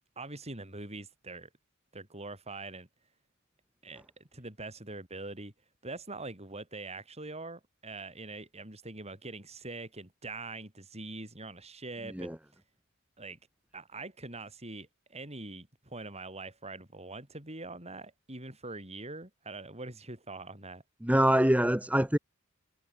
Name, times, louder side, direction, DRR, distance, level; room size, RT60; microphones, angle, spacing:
voice 1, 0.2-1.5 1.9-2.9 3.8-5.5 5.8-12.3 13.2-13.4 13.7-20.8, right 2 dB, 30° right, 7.8 m, -43 dB
voice 2, 21.0-22.2, right 1 dB, 5° right, 1.9 m, -25 dB
head